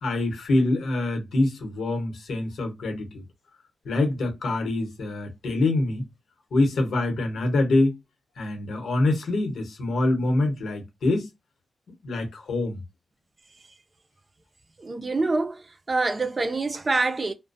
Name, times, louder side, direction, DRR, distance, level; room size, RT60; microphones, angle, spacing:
voice 1, 0.0-3.2 3.8-6.1 6.5-8.0 8.4-11.3 12.0-12.8, left 2 dB, 85° left, 0.9 m, -25 dB
voice 2, 14.8-17.3, right 3 dB, 25° right, 0.3 m, -26 dB
2.3 x 2.1 x 2.5 m
wide cardioid pair, 165°, 0 cm